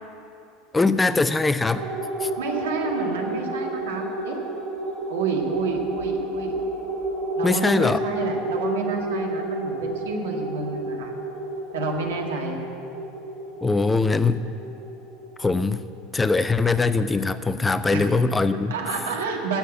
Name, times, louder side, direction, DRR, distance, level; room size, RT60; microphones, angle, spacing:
voice 1, 0.7-1.9 2.2-2.3 7.4-8.0 13.6-14.4 15.4-15.8 16.1-18.7, left 3 dB, 15° left, 13 dB, 0.5 m, -21 dB
sound 1, 1.7-16.5, right 2 dB, 35° right, 4.1 m, -31 dB
voice 2, 2.4-4.4 5.1-6.5 7.4-11.1 11.7-12.6 17.9-18.1 18.7-19.6, right 4 dB, 70° right, 1 dB, 2.0 m, -29 dB
11.5 x 8.4 x 9.0 m, 2.6 s
figure-of-eight pair, 75°, 0 cm